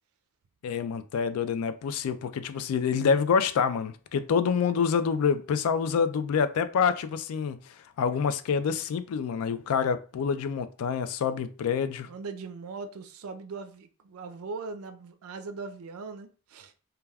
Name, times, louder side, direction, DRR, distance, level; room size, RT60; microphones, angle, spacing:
voice 1, 0.6-7.6 8.0-12.1, left 6 dB, 75° left, 0.3 m, -27 dB
voice 2, 12.1-16.7, right 4 dB, 75° right, 0.4 m, -40 dB
3.3 x 2.2 x 2.2 m
head